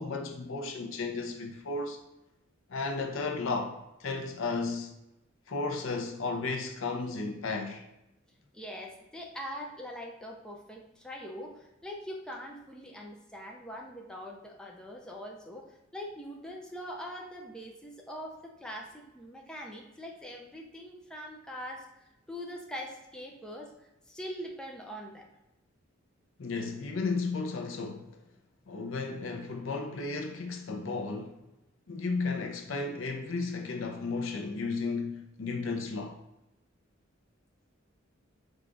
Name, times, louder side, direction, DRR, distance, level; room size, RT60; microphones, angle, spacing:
voice 1, 0.0-2.0 2.7-4.9 5.5-7.8 26.4-28.1 28.7-31.4 31.9-36.2, left 3 dB, 75° left, 0.6 m, -34 dB
voice 2, 8.5-25.3, equal, 5° left, 0.5 m, -43 dB
4.8 x 2.3 x 3.8 m
head